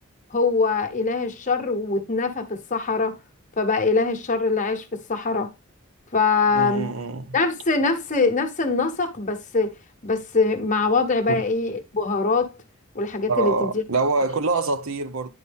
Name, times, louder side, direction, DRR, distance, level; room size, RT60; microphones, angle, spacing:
voice 1, 0.3-3.2 3.6-5.5 6.1-6.9 7.3-9.7 10.0-12.5 12.9-13.8, left 3 dB, 35° left, 1.2 m, -23 dB
voice 2, 6.5-7.3 11.3-11.4 13.3-15.3, right 3 dB, 80° right, 0.8 m, -25 dB
10.5 x 4.2 x 3.6 m
head